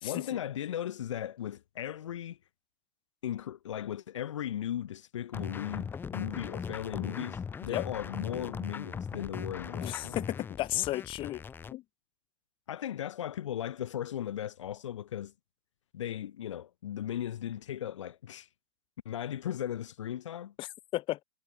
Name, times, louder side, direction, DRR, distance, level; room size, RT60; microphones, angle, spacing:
voice 1, 0.0-2.4 3.2-10.2 12.7-15.3 15.9-18.5 19.0-20.5, left 10 dB, 75° left, 1.2 m, -37 dB
sound 1, 5.3-11.7, left 6 dB, 15° left, 1.0 m, -39 dB
voice 2, 9.8-11.4 11.7-11.8 20.6-21.2, left 16 dB, 30° left, 2.5 m, -34 dB
hypercardioid pair, 125°, 16 cm